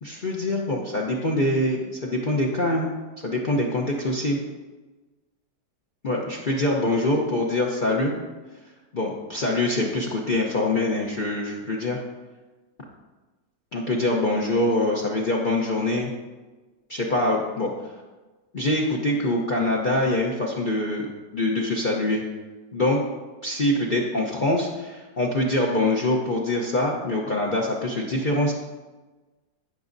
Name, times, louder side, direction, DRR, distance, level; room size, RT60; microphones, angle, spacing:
voice 1, 0.0-2.9 3.2-4.4 6.0-8.1 8.9-12.0 13.7-16.1 16.9-17.9 18.5-22.2 22.7-23.0 23.4-28.5, left 1 dB, 40° left, -3 dB, 0.8 m, -24 dB
16.5 x 6.1 x 2.7 m, 1.2 s
omnidirectional pair, 1.7 m